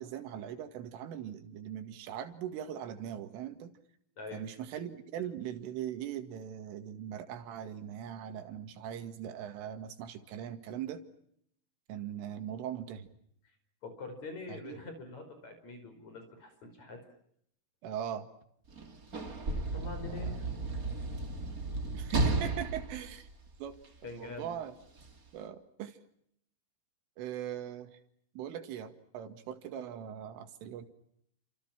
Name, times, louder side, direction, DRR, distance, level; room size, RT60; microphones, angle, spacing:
voice 1, 0.0-3.7 4.3-11.0 11.9-13.1 14.5-14.8 17.8-18.3 19.8-20.4 21.9-23.3 23.6-23.8 24.2-24.8 25.3-26.0 27.2-28.0 28.4-30.9, right 9 dB, 85° right, 8 dB, 4.6 m, -40 dB
voice 2, 13.8-17.0 19.7-20.5 24.0-24.6, left 2 dB, 35° left, 8 dB, 6.0 m, -44 dB
Sliding door / Slam, 18.7-24.1 25.0-25.1, right 2 dB, 25° right, 1.9 m, -34 dB
29.5 x 27.5 x 6.1 m, 0.70 s
omnidirectional pair, 5.6 m